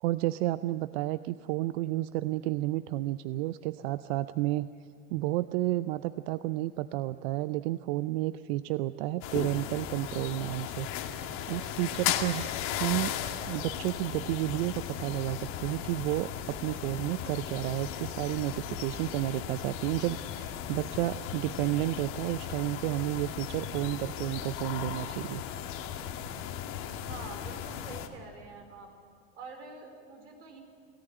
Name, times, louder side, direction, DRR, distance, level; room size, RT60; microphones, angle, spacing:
voice 1, 0.0-4.7 5.1-10.9 11.5-13.1 13.5-25.4, right 17 dB, 60° right, 14 dB, 0.7 m, -31 dB
sound 1, 9.2-28.1, left 9 dB, 60° left, 2.2 m, -36 dB
voice 2, 27.1-28.9 29.3-30.6, right 4 dB, 90° right, 3 dB, 4.8 m, -46 dB
28.0 x 14.5 x 9.0 m, 2.2 s
hypercardioid pair, 95°, 35 cm